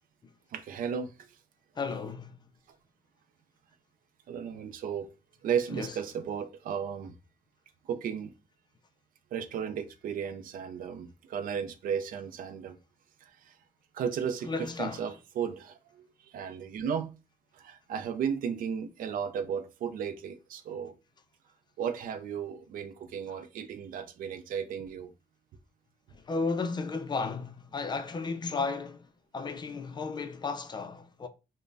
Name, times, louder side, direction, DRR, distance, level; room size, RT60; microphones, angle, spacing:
voice 1, 0.5-1.3 4.3-5.1 5.4-7.1 7.9-8.3 9.3-12.8 13.2-13.5 13.9-17.2 17.5-20.9 21.8-25.1, right 7 dB, 70° right, 0.4 m, -34 dB
voice 2, 1.8-2.5 5.8-5.9 14.4-15.0 26.1-31.3, left 4 dB, 30° left, 0.4 m, -34 dB
3.1 x 2.1 x 2.5 m
cardioid pair, 85°, 15 cm